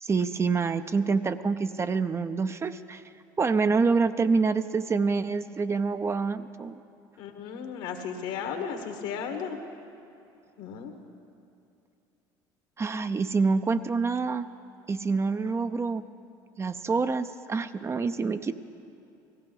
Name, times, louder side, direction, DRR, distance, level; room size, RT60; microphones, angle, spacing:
voice 1, 0.0-3.0 3.4-6.7 12.8-14.5 14.9-16.0 16.6-18.5, right 4 dB, 25° right, 11 dB, 0.5 m, -26 dB
voice 2, 7.2-9.6 10.6-10.9, left 7 dB, 75° left, 5 dB, 1.6 m, -35 dB
17.5 x 15.5 x 3.9 m, 2.7 s
hypercardioid pair, 80°, 11 cm